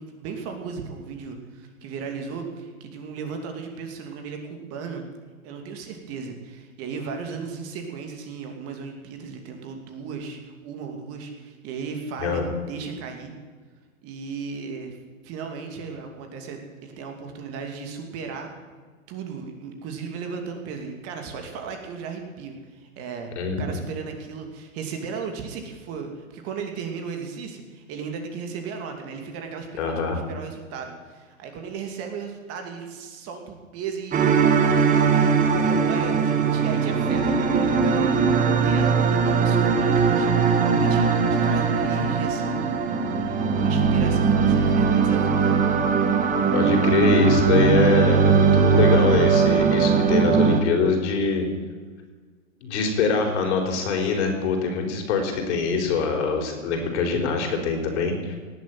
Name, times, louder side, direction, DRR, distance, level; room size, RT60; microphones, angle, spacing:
voice 1, 0.0-5.0 5.4-13.3 14.0-15.0 15.2-18.5 19.1-23.3 23.6-29.7 30.0-43.1 43.5-45.8, right 5 dB, 35° right, 4 dB, 2.8 m, -36 dB
voice 2, 23.4-23.8 29.8-30.2 46.5-51.5 52.6-58.3, left 5 dB, 55° left, 2 dB, 4.5 m, -24 dB
sound 1, 34.1-50.6, right 5 dB, 20° right, 1.8 m, -20 dB
18.0 x 8.0 x 9.1 m, 1.5 s
hypercardioid pair, 125°, 40 cm